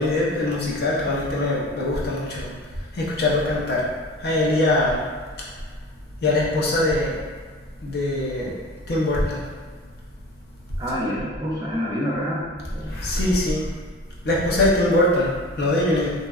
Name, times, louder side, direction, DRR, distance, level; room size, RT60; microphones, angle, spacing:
voice 1, 0.0-2.5 2.9-3.9 4.2-5.0 6.2-7.2 7.8-8.6 8.9-9.4 12.9-13.7 14.2-16.1, left 1 dB, 55° left, -5 dB, 0.5 m, -22 dB
voice 2, 10.8-13.0, equal, 20° right, -5 dB, 0.4 m, -27 dB
2.6 x 2.1 x 2.3 m, 1.5 s
head